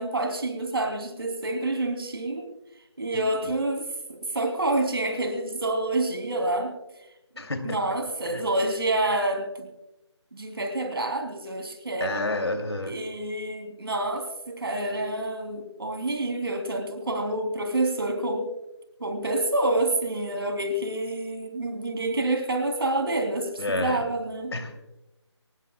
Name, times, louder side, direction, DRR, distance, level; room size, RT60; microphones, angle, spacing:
voice 1, 0.0-2.4 3.0-6.7 7.6-9.7 10.3-12.2 12.9-18.5 19.0-24.5, right 2 dB, 50° right, 5 dB, 3.2 m, -28 dB
voice 2, 3.1-3.5 7.4-7.8 8.2-8.4 12.0-12.9 23.6-24.0 24.5-24.7, left 2 dB, 60° left, 7 dB, 2.7 m, -29 dB
24.0 x 19.0 x 2.3 m, 0.95 s
figure-of-eight pair, 160°, 15 cm